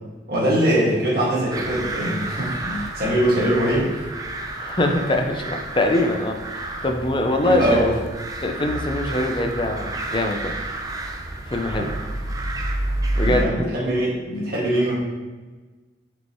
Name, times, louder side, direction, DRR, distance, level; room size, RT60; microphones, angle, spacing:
voice 1, 0.3-4.0 7.4-7.9 13.2-14.9, right 1 dB, 55° right, -5 dB, 1.9 m, -22 dB
sound 1, 1.5-13.5, right 2 dB, 20° right, 0.5 m, -30 dB
voice 2, 4.6-7.9 8.4-10.6 11.5-11.9 13.2-13.7, left 1 dB, 30° left, 4 dB, 0.6 m, -23 dB
6.2 x 5.4 x 3.1 m, 1.3 s
head